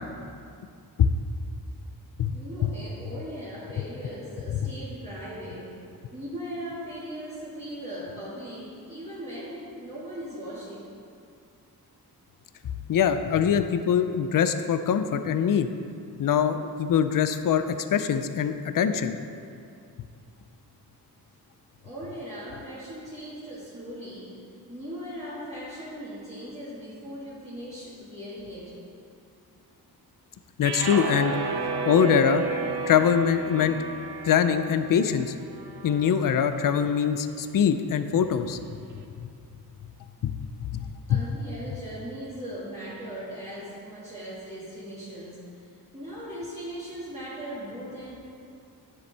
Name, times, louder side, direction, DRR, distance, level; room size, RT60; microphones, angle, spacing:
voice 1, 2.3-10.9 21.8-28.8 41.1-48.1, equal, 15° right, -11 dB, 1.9 m, -39 dB
voice 2, 12.9-15.7 16.2-17.6 17.9-19.2 30.6-31.4 31.8-32.4 32.9-35.4 35.8-38.6 40.2-40.3 40.6-41.2, left 8 dB, 55° left, 9 dB, 0.5 m, -23 dB
sound 1, 30.6-36.9, right 5 dB, 75° right, 0.8 m, -33 dB
9.8 x 6.8 x 3.4 m, 2.4 s
wide cardioid pair, 90°, 39 cm